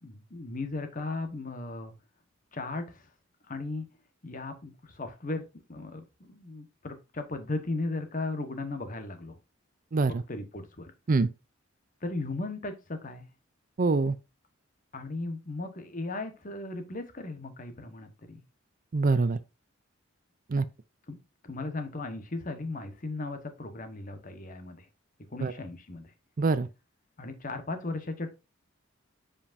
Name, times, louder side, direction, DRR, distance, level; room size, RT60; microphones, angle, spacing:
voice 1, 0.0-1.9 2.5-3.1 3.5-3.9 4.2-5.4 5.7-9.4 10.1-10.9 12.0-13.3 14.9-18.4 21.1-21.2 21.4-24.9 25.3-26.1 27.2-28.3, left 2 dB, 40° left, 1.2 m, -36 dB
voice 2, 13.8-14.1 18.9-19.4 20.5-20.6 25.4-25.5 26.4-26.7, right 3 dB, 40° right, 0.4 m, -24 dB
7.4 x 5.2 x 2.6 m
head